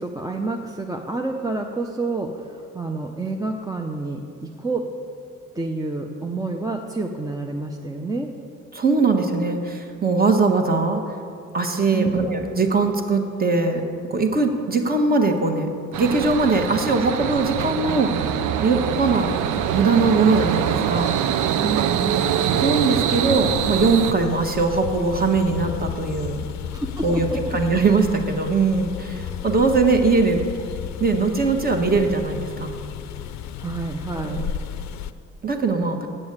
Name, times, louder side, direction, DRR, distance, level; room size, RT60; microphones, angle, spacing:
voice 1, 0.0-4.9 5.5-8.3 11.9-12.1 21.6-22.7 26.7-27.4 33.6-34.4, right 3 dB, 10° right, 2 dB, 0.7 m, -29 dB
voice 2, 8.7-11.0 11.5-13.8 14.1-15.7 16.0-18.1 18.6-19.3 19.7-21.2 22.6-26.4 27.0-27.3 27.5-30.4 31.0-32.7 34.2-34.5 35.4-36.1, right 3 dB, 30° right, 4 dB, 1.3 m, -21 dB
sound 1, 15.9-24.1, right 9 dB, 85° right, 0.6 m, -24 dB
sound 2, 23.3-35.1, left 9 dB, 65° left, 0.5 m, -33 dB
8.7 x 7.0 x 8.1 m, 2.5 s
cardioid pair, 90°, 30 cm